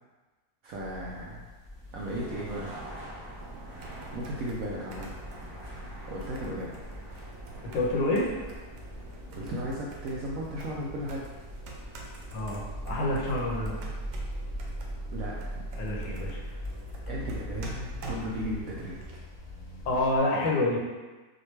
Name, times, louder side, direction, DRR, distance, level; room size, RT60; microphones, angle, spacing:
voice 1, 0.6-1.5 1.9-2.7 4.1-5.1 6.1-6.8 9.4-11.2 15.1-15.6 17.1-19.2, equal, 75° right, -4 dB, 0.8 m, -35 dB
sound 1, 0.7-20.2, equal, 60° left, 0.6 m, -41 dB
sound 2, 1.7-13.5, right 1 dB, 55° right, 2.1 m, -48 dB
sound 3, 3.4-19.1, right 3 dB, 90° right, 1.4 m, -46 dB
voice 2, 7.6-8.3 12.3-13.8 15.8-16.4 19.8-20.8, left 2 dB, 80° left, -3 dB, 1.6 m, -27 dB
6.3 x 2.2 x 3.2 m, 1.3 s
omnidirectional pair, 1.9 m